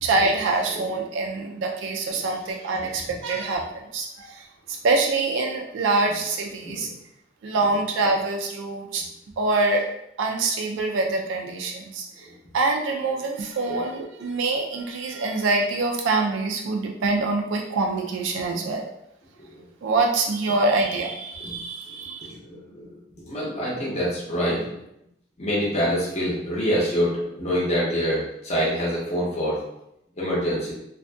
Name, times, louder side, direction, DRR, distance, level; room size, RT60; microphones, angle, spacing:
voice 1, 0.0-6.9 7.4-9.0 9.4-9.9 10.2-12.3 12.5-18.9 19.8-22.3, right 3 dB, 80° right, 1 dB, 0.3 m, -25 dB
voice 2, 2.1-2.6 6.6-6.7 13.7-13.8 19.4-19.6 21.4-21.5 22.4-23.0 23.3-24.8 25.4-29.6 30.2-30.7, equal, 35° left, -6 dB, 0.8 m, -26 dB
2.5 x 2.5 x 2.2 m, 0.80 s
head